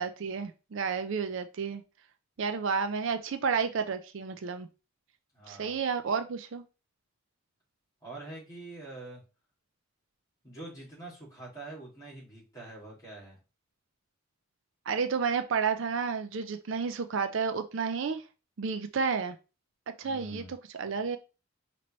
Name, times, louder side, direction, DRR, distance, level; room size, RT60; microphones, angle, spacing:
voice 1, 0.0-1.8 2.4-4.7 5.5-6.6 14.9-18.2 18.6-19.4 20.0-21.2, right 5 dB, 60° right, 0.4 m, -31 dB
voice 2, 5.3-5.8 8.0-9.2 10.4-13.4 20.0-20.5, right 2 dB, 15° left, 2.1 m, -45 dB
5.1 x 3.0 x 3.0 m
head